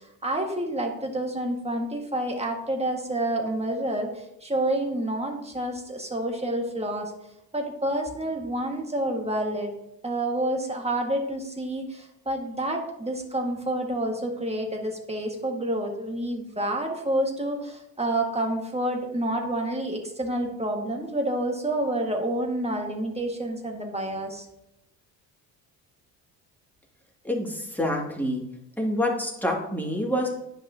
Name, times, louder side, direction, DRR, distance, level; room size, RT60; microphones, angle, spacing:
voice 1, 0.0-7.1 7.5-9.7 10.0-24.5, right 1 dB, 15° right, 2 dB, 1.7 m, -28 dB
voice 2, 27.2-28.4 28.8-30.3, left 1 dB, 5° left, -2 dB, 2.2 m, -27 dB
10.5 x 5.4 x 2.8 m, 0.85 s
hypercardioid pair, 65°, 49 cm